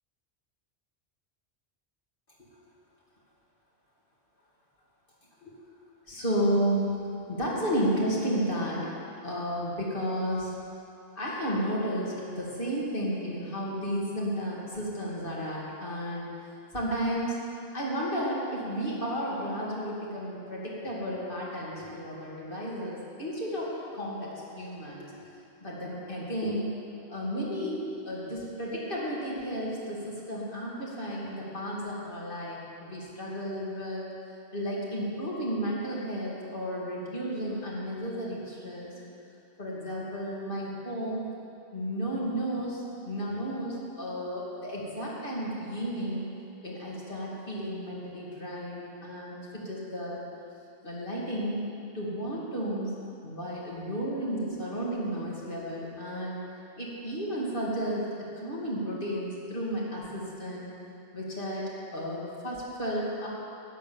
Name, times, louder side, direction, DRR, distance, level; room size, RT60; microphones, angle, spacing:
voice 1, 6.1-6.9 7.3-8.9 9.2-10.5 11.2-16.3 16.7-17.4 17.7-25.1 25.6-26.7 27.1-34.1 34.5-38.9 39.6-41.2 41.7-46.2 46.6-50.2 50.8-51.6 51.9-52.9 53.2-56.4 56.8-58.1 58.4-60.7 61.1-63.3, equal, 55° left, -5 dB, 2.7 m, -32 dB
12.0 x 9.4 x 7.1 m, 2.7 s
omnidirectional pair, 1.1 m